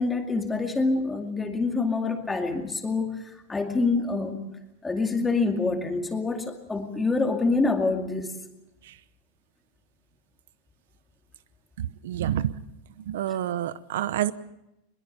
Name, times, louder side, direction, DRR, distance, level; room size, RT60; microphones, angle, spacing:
voice 1, 0.0-3.1 3.5-4.4 4.8-8.3, left 3 dB, 10° left, 4 dB, 2.4 m, -26 dB
voice 2, 11.8-12.6 13.1-14.3, right 11 dB, 80° right, 15 dB, 0.9 m, -28 dB
21.5 x 21.5 x 7.0 m, 0.89 s
supercardioid pair, 155°, 0 cm